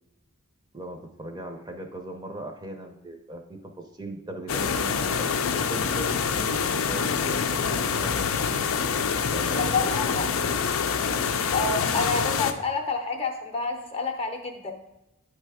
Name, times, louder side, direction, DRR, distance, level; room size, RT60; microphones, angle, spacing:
voice 1, 0.7-5.3 5.7-8.6 9.3-10.6, right 1 dB, 20° right, 4 dB, 0.6 m, -38 dB
sound 1, 4.5-12.5, left 6 dB, 75° left, 0.5 m, -26 dB
voice 2, 9.6-10.2 11.5-14.7, left 4 dB, 25° left, 4 dB, 0.7 m, -28 dB
9.0 x 3.3 x 4.8 m, 0.93 s
head